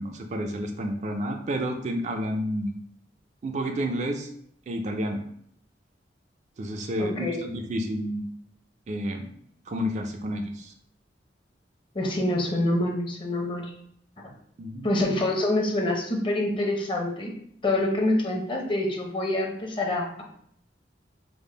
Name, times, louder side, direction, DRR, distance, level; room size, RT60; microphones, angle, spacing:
voice 1, 0.0-2.7 3.4-4.3 4.7-5.2 6.6-8.3 8.9-9.3 9.7-10.7 14.6-14.9, equal, 40° right, 4 dB, 0.3 m, -30 dB
voice 2, 7.0-7.4 11.9-13.7 14.8-17.3 17.6-20.2, left 1 dB, 30° left, 0 dB, 0.7 m, -26 dB
3.5 x 2.0 x 3.8 m, 0.67 s
head